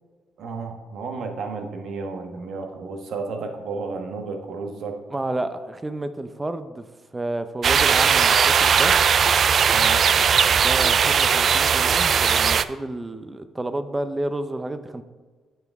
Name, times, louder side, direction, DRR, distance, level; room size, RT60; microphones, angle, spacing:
voice 1, 0.4-5.0 9.7-10.1, right 4 dB, 70° right, 4 dB, 1.2 m, -32 dB
voice 2, 5.1-6.9 7.1-9.0 10.5-15.0, right 2 dB, 20° right, 10 dB, 0.6 m, -30 dB
sound 1, 7.6-12.6, right 7 dB, 55° right, 0.3 m, -18 dB
9.0 x 5.8 x 3.6 m, 1.4 s
cardioid pair, 90°, 0 cm